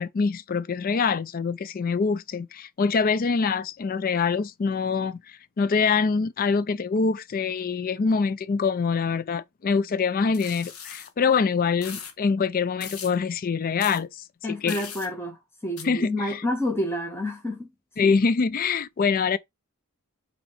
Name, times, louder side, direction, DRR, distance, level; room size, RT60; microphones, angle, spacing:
voice 1, 0.0-14.8 15.8-16.4 18.0-19.4, left 5 dB, 40° left, 0.4 m, -25 dB
sound 1, 10.3-11.1 11.8-12.1 12.8-13.1 13.8-14.0 14.7-15.1 15.8-15.9, left 7 dB, 85° left, 1.1 m, -39 dB
voice 2, 14.4-17.7 18.0-18.1, left 1 dB, 10° left, 1.4 m, -29 dB
5.5 x 4.3 x 4.1 m
head